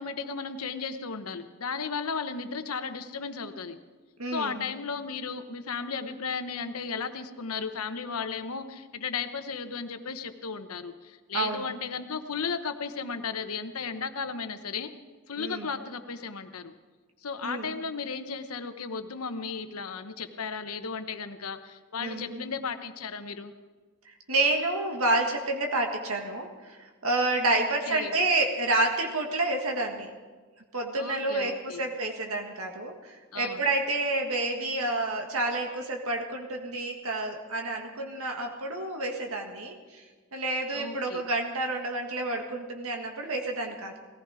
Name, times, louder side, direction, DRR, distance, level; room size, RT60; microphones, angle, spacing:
voice 1, 0.0-3.8 4.3-14.9 15.3-16.7 17.2-23.5 27.5-28.1 30.9-31.8 33.3-33.6 40.7-41.2, left 5 dB, 90° left, 9 dB, 1.0 m, -35 dB
voice 2, 4.2-4.6 11.3-11.7 15.4-15.7 17.4-17.7 22.0-22.4 24.0-30.1 30.7-40.0 40.3-44.0, right 2 dB, 75° right, 2 dB, 1.7 m, -29 dB
18.5 x 15.0 x 4.9 m, 1.4 s
head